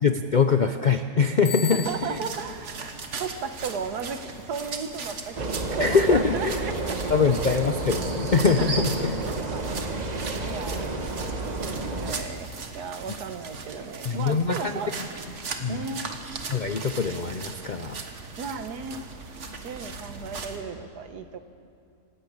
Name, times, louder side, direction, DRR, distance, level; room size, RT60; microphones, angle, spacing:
voice 1, 0.0-2.2 5.8-6.6 7.1-9.2 14.0-14.7 15.6-15.8 16.5-18.0, left 5 dB, 65° left, 8 dB, 0.4 m, -23 dB
Bicycle bell, 1.5-2.4, left 7 dB, 20° left, 2.7 m, -35 dB
voice 2, 1.7-7.6 8.6-8.8 9.2-10.0 10.4-10.9 11.4-12.5 12.7-15.0 15.7-16.2 18.4-19.1 19.6-21.4, right 6 dB, 90° right, 9 dB, 1.6 m, -35 dB
sound 1, 1.8-20.6, right 4 dB, 50° right, 1.6 m, -39 dB
sound 2, 5.4-12.2, right 2 dB, 30° right, 1.2 m, -30 dB
26.5 x 12.5 x 8.7 m, 2.5 s
omnidirectional pair, 1.7 m